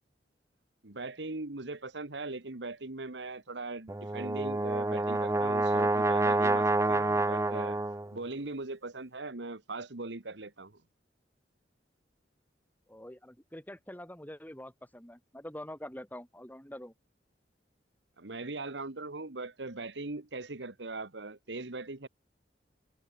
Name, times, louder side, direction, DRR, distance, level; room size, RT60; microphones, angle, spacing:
voice 1, 0.8-7.8 8.1-10.8 18.2-22.1, right 3 dB, 75° right, 1.6 m, -40 dB
Brass instrument, 3.9-8.2, right 2 dB, 15° right, 0.6 m, -28 dB
voice 2, 12.9-16.9, left 1 dB, 10° left, 6.6 m, -45 dB
head